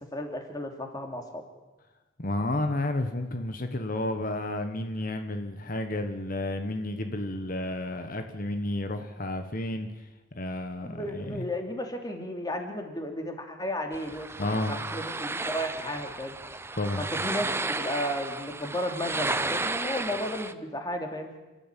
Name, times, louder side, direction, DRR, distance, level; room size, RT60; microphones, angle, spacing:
voice 1, 0.1-1.4 10.8-14.3 14.7-16.3 17.0-21.3, left 1 dB, 20° left, 3 dB, 3.0 m, -33 dB
voice 2, 2.2-11.4 14.4-14.8 16.8-17.0, left 1 dB, 45° left, 7 dB, 1.3 m, -31 dB
sound 1, 13.9-20.5, right 3 dB, 10° right, 0.7 m, -33 dB
29.5 x 12.5 x 9.1 m, 1.2 s
head